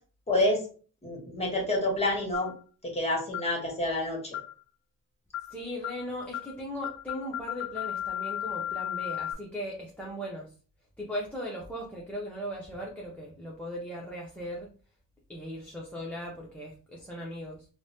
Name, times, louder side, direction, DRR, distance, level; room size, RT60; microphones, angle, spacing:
voice 1, 0.3-0.6 1.0-2.5 2.8-4.2, left 1 dB, 20° left, -1 dB, 1.3 m, -28 dB
sound 1, 2.3-2.6 3.3-3.5 4.3-4.6 5.3-5.5 5.8-6.0 6.3-6.5 6.8-9.3, left 12 dB, 60° left, 0.5 m, -35 dB
voice 2, 5.5-10.5 11.0-14.7 15.3-17.7, equal, 5° left, -3 dB, 0.6 m, -38 dB
3.1 x 2.0 x 2.7 m, 0.39 s
cardioid pair, 90°, 30 cm